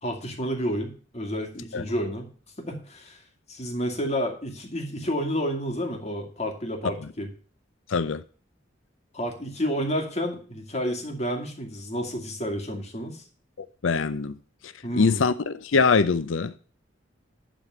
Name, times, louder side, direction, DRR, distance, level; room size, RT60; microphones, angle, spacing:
voice 1, 0.0-2.3 2.6-3.2 3.5-7.3 9.1-13.2 14.8-15.2, equal, 35° left, 2.2 m, -30 dB
voice 2, 7.9-8.2 13.6-14.4 14.6-16.6, left 4 dB, 85° left, 0.6 m, -23 dB
11.5 x 4.2 x 7.3 m
head